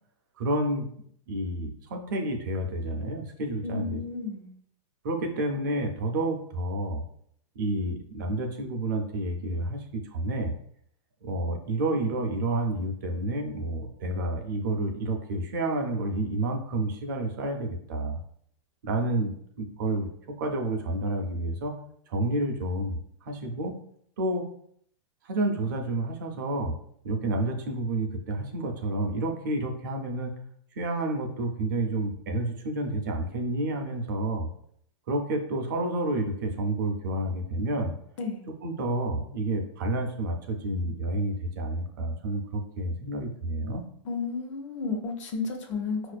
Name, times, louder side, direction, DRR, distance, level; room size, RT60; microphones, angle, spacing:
voice 1, 0.4-0.9 1.3-4.0 5.0-7.0 7.6-10.5 11.2-18.2 18.8-21.7 22.1-23.8 24.2-24.4 25.2-26.7 27.0-30.3 30.7-34.5 35.1-37.9 38.6-43.8, right 2 dB, 40° right, 3 dB, 0.4 m, -29 dB
voice 2, 3.6-4.5 38.2-38.4 44.0-46.2, left 4 dB, 70° left, 3 dB, 0.7 m, -32 dB
4.4 x 2.4 x 2.3 m, 0.64 s
supercardioid pair, 180°, 16 cm